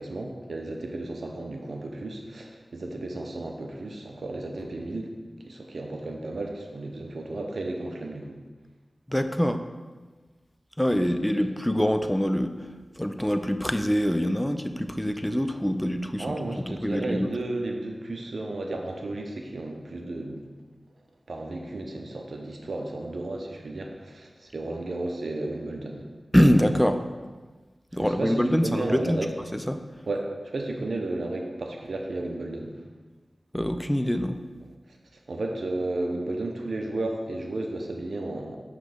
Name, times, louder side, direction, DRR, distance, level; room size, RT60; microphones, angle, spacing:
voice 1, 0.0-5.1 5.4-8.4 11.1-11.5 16.2-20.4 21.3-26.1 28.0-29.3 30.1-32.8 35.3-38.6, right 2 dB, 80° right, 2 dB, 0.7 m, -33 dB
voice 2, 9.1-9.6 10.8-16.4 16.7-17.3 26.3-27.0 27.9-29.3 29.5-29.8 33.5-34.4, equal, 10° left, 8 dB, 0.4 m, -24 dB
5.8 x 3.2 x 5.0 m, 1.4 s
cardioid pair, 50°, 0 cm